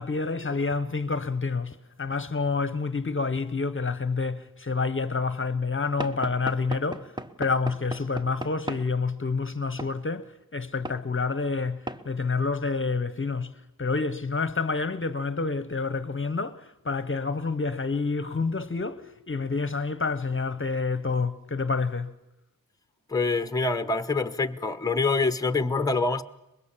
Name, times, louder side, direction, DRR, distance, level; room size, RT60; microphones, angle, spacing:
voice 1, 0.0-22.1, left 4 dB, 35° left, 1.0 m, -28 dB
Knock / Wood, 6.0-8.9 9.8-10.0 10.9-11.0 11.9-12.1, right 1 dB, 10° right, 1.1 m, -36 dB
voice 2, 23.1-26.2, left 3 dB, 10° left, 1.0 m, -25 dB
24.0 x 21.5 x 7.3 m
wide cardioid pair, 105°, 35 cm